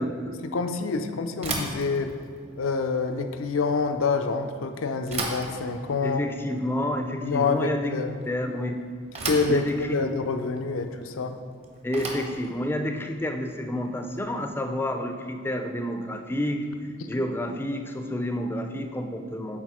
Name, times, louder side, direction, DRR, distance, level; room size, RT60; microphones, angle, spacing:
voice 1, 0.0-0.4 6.0-7.9 8.3-8.8 9.5-10.0 11.8-16.7 17.1-19.6, left 1 dB, 10° left, 6 dB, 0.4 m, -29 dB
voice 2, 0.5-2.1 2.6-6.2 7.2-8.2 9.3-9.7 9.9-11.4, left 4 dB, 85° left, 7 dB, 0.5 m, -27 dB
Bicycle / Thump thud, 1.4-14.5, right 2 dB, 30° right, 0.8 m, -38 dB
7.3 x 4.2 x 4.8 m, 2.1 s
head